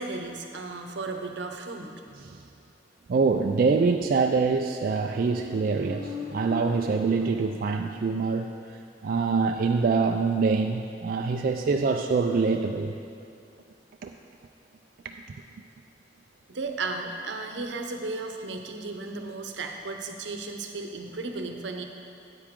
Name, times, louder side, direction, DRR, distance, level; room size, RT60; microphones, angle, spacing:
voice 1, 0.0-1.9 16.5-21.8, right 3 dB, 80° right, 4 dB, 0.8 m, -34 dB
voice 2, 3.1-8.5 9.0-12.9 14.0-14.1 15.0-15.1, right 4 dB, 55° right, 3 dB, 0.3 m, -25 dB
Motorcycle, 4.5-8.2, left 3 dB, 60° left, 1.6 m, -40 dB
9.5 x 8.7 x 3.7 m, 2.5 s
head